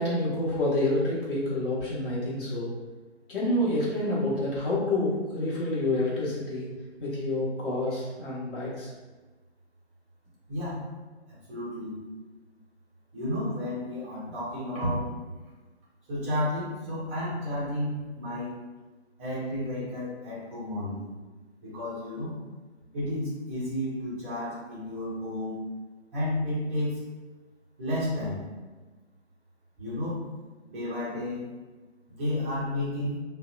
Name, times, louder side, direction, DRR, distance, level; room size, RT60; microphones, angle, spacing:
voice 1, 0.0-2.7 3.3-6.7 7.0-8.9, left 1 dB, 50° left, -7 dB, 1.1 m, -28 dB
voice 2, 10.5-10.8 11.3-11.9 13.1-15.1 16.1-18.6 19.2-21.1 21.6-22.3 22.9-25.5 26.1-27.0 27.8-28.5 29.8-30.2 30.7-31.5 32.1-33.2, left 1 dB, 10° right, -9 dB, 0.4 m, -32 dB
2.7 x 2.1 x 2.3 m, 1.2 s
figure-of-eight pair, 135°, 34 cm